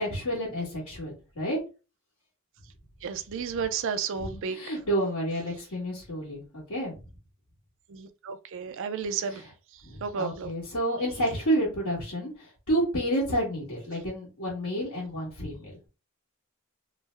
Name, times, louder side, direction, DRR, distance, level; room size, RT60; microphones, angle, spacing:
voice 1, 0.0-1.6 4.2-6.9 9.8-12.3 12.7-15.7, right 1 dB, 85° left, 1.5 m, -30 dB
voice 2, 3.0-4.6 7.9-9.4 10.0-10.5, right 6 dB, 60° right, 0.4 m, -32 dB
3.2 x 2.1 x 3.3 m
head